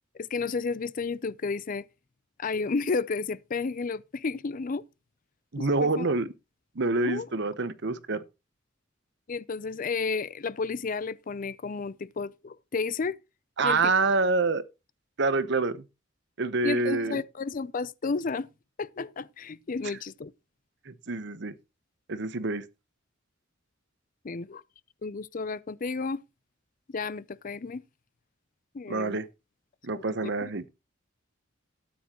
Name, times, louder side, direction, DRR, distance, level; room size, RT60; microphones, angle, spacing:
voice 1, 0.1-1.8 2.4-4.8 5.6-6.0 7.0-7.3 9.3-13.2 13.6-13.9 16.6-18.5 18.8-20.3 24.2-24.6 25.0-26.2 26.9-27.8 28.7-29.2 29.9-30.0 30.4-30.5, left 4 dB, 40° left, 0.5 m, -32 dB
voice 2, 5.5-6.3 6.7-8.2 13.6-14.6 15.2-15.8 16.4-17.2 20.9-21.5 22.1-22.7 28.9-29.3 29.8-30.6, right 3 dB, 60° right, 0.9 m, -27 dB
13.0 x 9.5 x 3.0 m
head